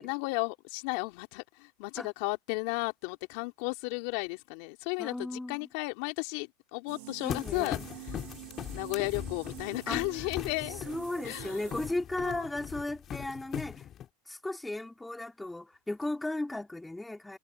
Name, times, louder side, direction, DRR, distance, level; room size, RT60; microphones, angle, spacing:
voice 1, 0.0-7.8 8.7-10.8 11.3-11.6 12.2-12.4, left 28 dB, 65° left, 3.5 m, -34 dB
voice 2, 5.0-5.7 7.2-7.8 9.9-10.3 10.9-13.9 14.3-17.4, left 2 dB, 5° left, 2.9 m, -36 dB
sound 1, 6.9-11.9, right 24 dB, 70° right, 4.0 m, -47 dB
sound 2, 7.3-14.1, left 10 dB, 40° left, 2.9 m, -40 dB
hypercardioid pair, 100°, 0 cm